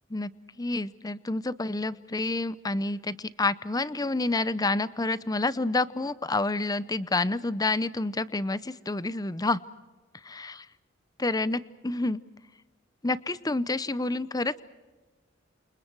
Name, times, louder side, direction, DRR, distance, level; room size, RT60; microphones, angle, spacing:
voice 1, 0.6-9.6 10.2-10.6 11.2-12.2 13.0-14.6, left 2 dB, 20° left, 17 dB, 0.6 m, -28 dB
29.0 x 28.0 x 4.7 m, 1.3 s
head